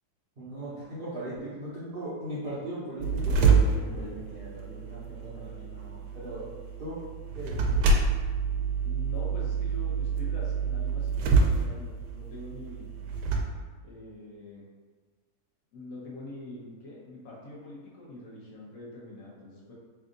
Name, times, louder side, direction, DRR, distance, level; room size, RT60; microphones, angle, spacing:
voice 1, 0.4-6.5 6.8-7.0 7.3-7.8, right 1 dB, 45° right, -11 dB, 0.8 m, -39 dB
sound 1, 3.0-13.4, right 4 dB, 85° right, 1.1 m, -27 dB
voice 2, 8.8-12.9 13.8-14.6 15.7-19.7, left 1 dB, 65° left, -5 dB, 1.3 m, -44 dB
3.4 x 2.5 x 3.8 m, 1.4 s
omnidirectional pair, 1.7 m